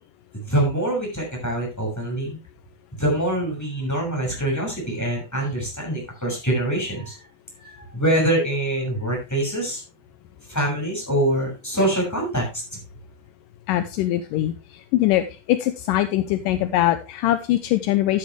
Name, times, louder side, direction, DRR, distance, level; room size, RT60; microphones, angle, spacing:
voice 1, 0.3-2.4 2.9-7.2 7.6-9.8 10.5-12.8, right 1 dB, 5° left, -2 dB, 6.2 m, -24 dB
voice 2, 13.7-18.2, left 14 dB, 80° left, 10 dB, 2.2 m, -22 dB
12.0 x 9.3 x 3.2 m, 0.27 s
omnidirectional pair, 4.0 m